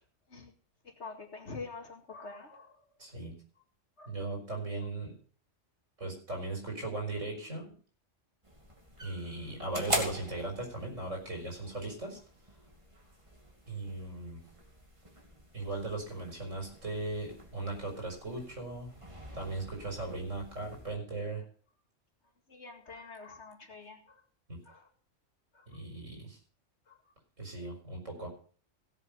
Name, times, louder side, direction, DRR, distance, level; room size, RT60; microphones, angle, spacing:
voice 1, 0.8-2.8 4.0-4.1 22.5-24.2 24.6-24.9 25.5-25.7 26.9-27.0, left 4 dB, 65° left, 3 dB, 2.4 m, -46 dB
voice 2, 3.0-3.3 4.1-5.1 6.0-7.7 9.0-12.2 13.7-14.4 15.5-18.9 19.3-21.4 24.5-24.6 25.7-26.4 27.4-28.3, right 2 dB, 80° right, 1 dB, 5.3 m, -38 dB
sound 1, 8.4-20.9, equal, 25° right, 2.5 m, -43 dB
17.0 x 7.4 x 5.4 m, 0.43 s
omnidirectional pair, 1.3 m